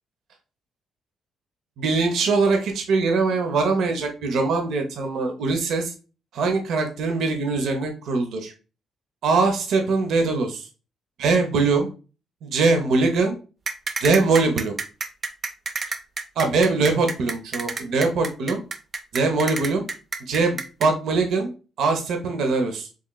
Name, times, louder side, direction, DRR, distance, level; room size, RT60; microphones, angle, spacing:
voice 1, 1.8-5.9 6.3-8.5 9.2-10.7 11.2-11.9 12.4-13.4 14.0-14.7 16.4-18.6 19.1-19.8 20.3-21.5 21.8-22.9, right 3 dB, 75° right, 4 dB, 0.7 m, -22 dB
sound 1, 13.7-20.9, right 4 dB, 40° right, 0.4 m, -29 dB
4.8 x 3.1 x 2.2 m, 0.34 s
cardioid pair, 90°, 0 cm